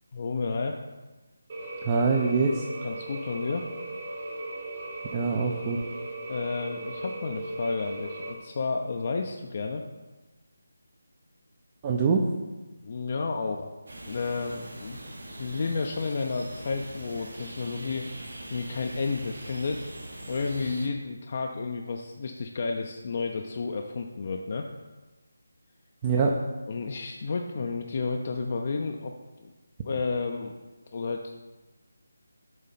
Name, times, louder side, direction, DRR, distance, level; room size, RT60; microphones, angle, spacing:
voice 1, 0.1-0.8 2.8-3.7 6.3-9.8 12.8-13.7 14.1-15.0 15.4-18.1 18.5-19.9 20.3-24.7 26.7-29.1 29.4-29.5 29.8-30.5 30.9-31.4, left 4 dB, 45° left, 3 dB, 0.4 m, -31 dB
sound 1, 1.5-8.3, right 2 dB, 40° right, 1.1 m, -37 dB
voice 2, 1.8-2.6 5.1-5.8 11.8-12.3 26.0-26.4, right 4 dB, 25° right, 1 dB, 0.5 m, -24 dB
sound 2, 13.9-20.9, right 1 dB, 70° right, 1.5 m, -42 dB
7.5 x 3.2 x 5.6 m, 1.2 s
figure-of-eight pair, 160°, 0 cm